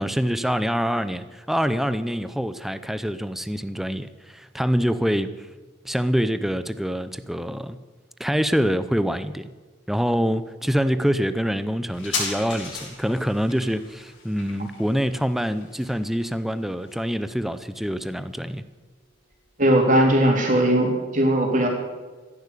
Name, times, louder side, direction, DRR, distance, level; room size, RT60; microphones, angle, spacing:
voice 1, 0.0-5.5 5.8-7.8 8.2-9.5 9.9-18.6, equal, ahead, 12 dB, 0.6 m, -25 dB
sound 1, 11.9-19.0 19.3-19.4, left 4 dB, 85° left, 6.1 m, -37 dB
voice 2, 19.6-21.7, right 1 dB, 40° right, 1 dB, 3.6 m, -19 dB
15.5 x 11.0 x 8.3 m, 1.3 s
head